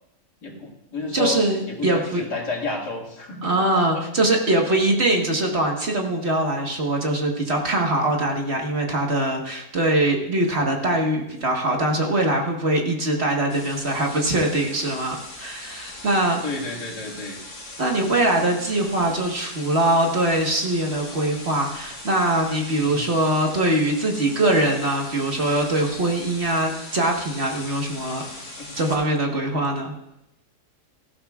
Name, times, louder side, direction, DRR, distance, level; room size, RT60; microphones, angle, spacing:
voice 1, 0.4-1.4 1.7-2.0 2.3-4.1 16.4-17.4 22.8-23.1 28.6-28.7, left 3 dB, 85° left, -1 dB, 2.7 m, -31 dB
voice 2, 1.1-2.2 3.4-16.4 17.8-28.2 28.7-29.9, right 1 dB, 40° right, 1 dB, 1.6 m, -22 dB
sound 1, 13.5-28.9, left 2 dB, 70° left, 3.6 m, -40 dB
18.0 x 15.0 x 2.4 m, 0.88 s
omnidirectional pair, 1.7 m